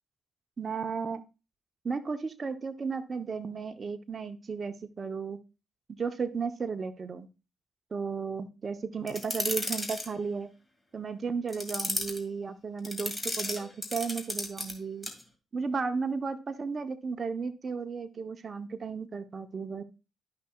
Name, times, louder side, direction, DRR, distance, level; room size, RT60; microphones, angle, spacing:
voice 1, 0.6-1.2 1.8-5.4 6.0-7.3 7.9-10.5 10.9-15.1 15.5-19.8, right 5 dB, 45° right, 8 dB, 0.8 m, -34 dB
sound 1, 9.1-10.1 11.5-12.2 12.8-14.7 15.0-15.2, left 1 dB, 10° left, 2.1 m, -34 dB
12.5 x 5.6 x 2.3 m, 0.30 s
supercardioid pair, 65°, 0 cm